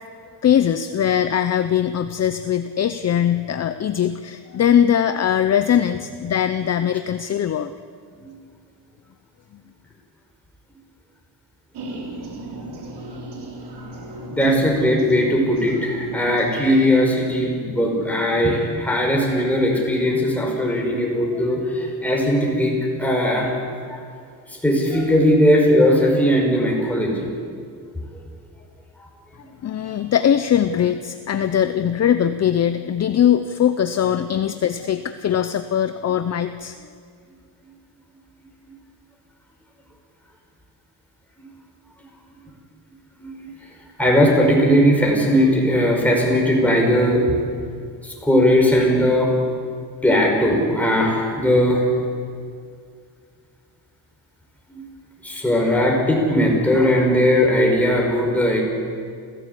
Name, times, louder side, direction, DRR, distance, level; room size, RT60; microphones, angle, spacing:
voice 1, 0.4-7.7 29.6-36.8, left 9 dB, 40° left, 10 dB, 0.7 m, -21 dB
sound 1, 11.7-16.9, right 1 dB, 70° right, 4.7 m, -35 dB
voice 2, 14.3-23.6 23.9-24.0 24.5-27.3 38.6-38.7 41.4-41.5 43.2-43.5 44.0-47.3 48.0-49.4 50.0-51.9 54.7-54.8 55.2-58.6, equal, 5° left, -1 dB, 5.4 m, -18 dB
28.5 x 16.0 x 8.4 m, 2.2 s
cardioid pair, 155°, 41 cm